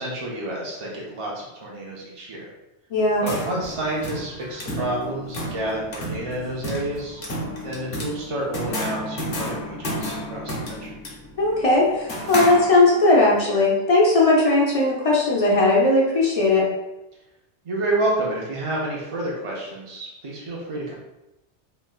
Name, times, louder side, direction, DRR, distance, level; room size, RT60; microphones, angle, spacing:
voice 1, 0.0-2.5 3.2-7.2 7.6-10.9 17.6-20.9, right 1 dB, 50° right, -4 dB, 0.3 m, -29 dB
voice 2, 2.9-3.2 11.4-16.7, left 2 dB, 50° left, -4 dB, 0.4 m, -18 dB
sound 1, 3.0-13.1, equal, 65° left, 0.9 m, -32 dB
3.1 x 2.2 x 2.3 m, 0.96 s
omnidirectional pair, 1.2 m